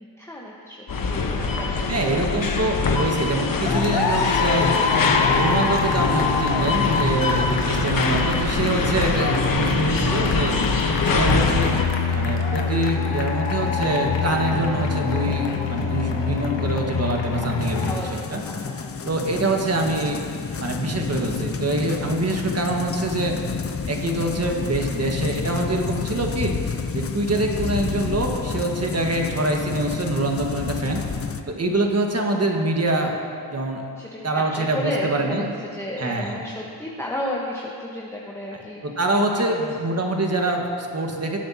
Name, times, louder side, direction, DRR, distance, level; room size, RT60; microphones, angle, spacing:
voice 1, 0.0-2.3 7.3-7.7 17.8-19.0 34.0-38.8 39.3-39.6, left 1 dB, 5° left, -4 dB, 1.3 m, -33 dB
sound 1, 0.9-11.8, left 4 dB, 45° left, 1.2 m, -23 dB
voice 2, 1.9-4.7 5.0-10.6 11.1-11.8 12.1-17.9 18.3-18.4 19.0-20.2 20.6-23.3 23.9-26.6 26.9-31.0 31.5-33.1 33.5-33.8 34.2-35.5 36.0-36.4 38.5-41.4, right 2 dB, 35° right, 1 dB, 1.7 m, -25 dB
sound 2, 3.7-18.0, left 5 dB, 70° left, 1.3 m, -25 dB
sound 3, 17.6-31.4, left 6 dB, 30° left, 0.7 m, -30 dB
18.0 x 7.8 x 2.9 m, 2.4 s
cardioid pair, 55°, 45 cm